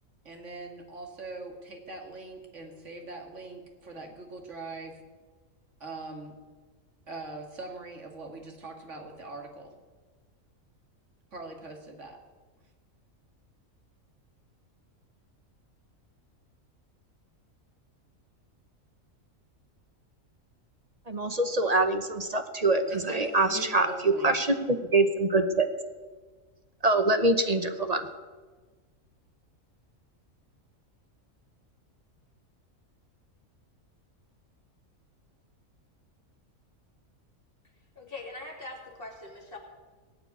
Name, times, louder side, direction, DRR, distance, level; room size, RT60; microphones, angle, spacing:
voice 1, 0.2-5.0 5.8-6.3 7.1-9.8 11.3-12.2 22.9-24.4, right 2 dB, 60° right, 2 dB, 2.5 m, -42 dB
voice 2, 21.1-25.7 26.8-28.1, right 2 dB, 35° right, 8 dB, 0.9 m, -25 dB
voice 3, 38.0-39.6, left 2 dB, 40° left, 0 dB, 2.7 m, -42 dB
19.0 x 6.8 x 9.4 m, 1.4 s
omnidirectional pair, 1.4 m